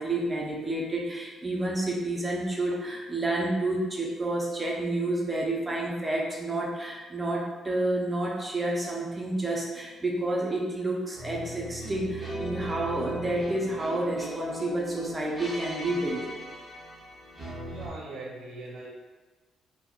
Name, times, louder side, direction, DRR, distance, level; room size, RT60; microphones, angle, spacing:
voice 1, 0.0-16.2, right 2 dB, 20° right, -3 dB, 0.5 m, -29 dB
sound 1, 11.1-17.9, right 1 dB, 5° left, 1.0 m, -38 dB
voice 2, 17.6-18.9, right 2 dB, 75° right, -4 dB, 0.4 m, -40 dB
3.5 x 2.1 x 2.3 m, 1.2 s
cardioid pair, 90°, 0 cm